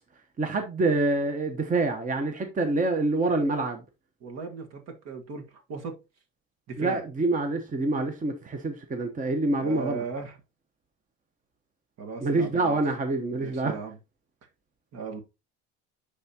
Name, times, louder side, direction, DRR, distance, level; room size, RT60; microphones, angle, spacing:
voice 1, 0.4-3.8 6.8-10.0 12.2-13.7, right 2 dB, 25° right, 0.9 m, -26 dB
voice 2, 4.2-6.0 6.7-7.0 9.6-10.4 12.0-12.8 13.3-14.0 14.9-15.2, right 5 dB, 55° right, 1.5 m, -37 dB
10.5 x 3.5 x 2.8 m
supercardioid pair, 85°, 31 cm